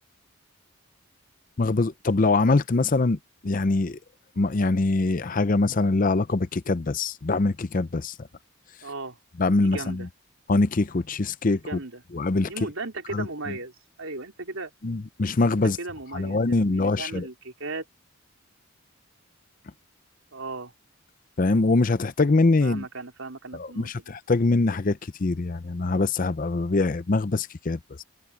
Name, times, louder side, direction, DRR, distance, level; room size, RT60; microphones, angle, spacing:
voice 1, 1.6-4.0 4.4-8.1 9.4-10.1 10.5-11.8 12.1-12.5 13.1-13.5 14.8-15.8 16.1-17.3 21.4-22.9 23.5-28.0, left 3 dB, 40° left, 0.5 m, -23 dB
voice 2, 8.8-9.2 9.6-10.1 11.7-12.0 12.5-13.7 14.0-14.7 15.6-17.8 20.3-20.7 22.6-24.1, right 3 dB, 70° right, 3.8 m, -36 dB
head